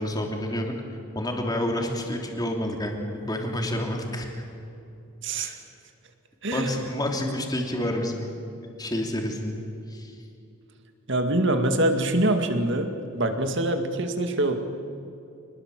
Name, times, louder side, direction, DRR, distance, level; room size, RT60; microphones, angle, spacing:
voice 1, 0.0-4.4 5.3-5.6 6.5-8.3 8.8-9.6 9.9-10.2, left 1 dB, 20° left, 2 dB, 2.9 m, -29 dB
voice 2, 11.1-14.5, right 1 dB, 55° right, 6 dB, 2.3 m, -24 dB
26.5 x 20.5 x 7.7 m, 2.7 s
head